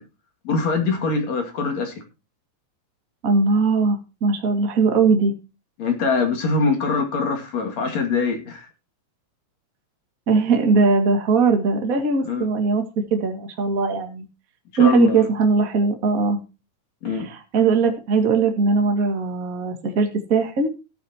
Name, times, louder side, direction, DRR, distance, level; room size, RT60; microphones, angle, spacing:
voice 1, 0.4-1.9 5.8-8.7 12.3-12.5 14.8-15.3 17.0-17.2, left 4 dB, 55° left, 3 dB, 3.3 m, -23 dB
voice 2, 3.2-5.3 10.3-12.8 13.1-14.2 14.8-16.4 17.1-20.7, right 4 dB, 30° right, 4 dB, 2.0 m, -20 dB
16.5 x 9.1 x 2.9 m, 0.29 s
omnidirectional pair, 4.0 m